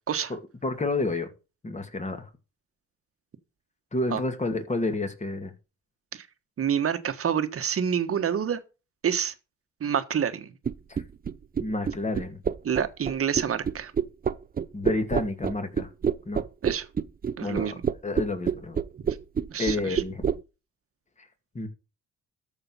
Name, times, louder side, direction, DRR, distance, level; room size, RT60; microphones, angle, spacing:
voice 1, 0.3-1.3 1.6-2.3 3.9-5.5 10.9-11.0 11.6-12.4 14.7-15.9 16.3-16.4 17.4-17.7 18.0-18.8 19.6-20.3 21.5-21.7, left 2 dB, 25° left, 2.3 m, -30 dB
voice 2, 6.6-8.6 9.0-9.3 9.8-10.5 12.6-13.9 16.6-16.8 17.4-17.7 19.5-20.0, right 8 dB, 50° right, 1.4 m, -27 dB
sound 1, 10.7-20.4, right 7 dB, 30° right, 0.6 m, -27 dB
13.5 x 4.9 x 5.6 m
cardioid pair, 90°, 30 cm